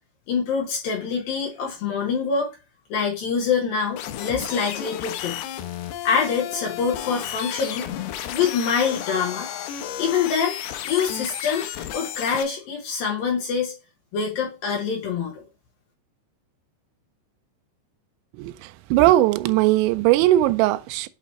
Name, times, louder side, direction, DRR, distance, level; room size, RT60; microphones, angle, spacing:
voice 1, 0.3-2.5 2.9-5.4 6.0-7.9 8.3-9.5 10.0-10.6 10.8-13.7 14.1-15.4, left 6 dB, 65° left, 2.5 m, -25 dB
sound 1, 4.0-12.4, left 10 dB, 90° left, 2.2 m, -33 dB
voice 2, 18.9-21.1, right 15 dB, 85° right, 2.7 m, -18 dB
8.9 x 3.0 x 4.1 m
omnidirectional pair, 5.5 m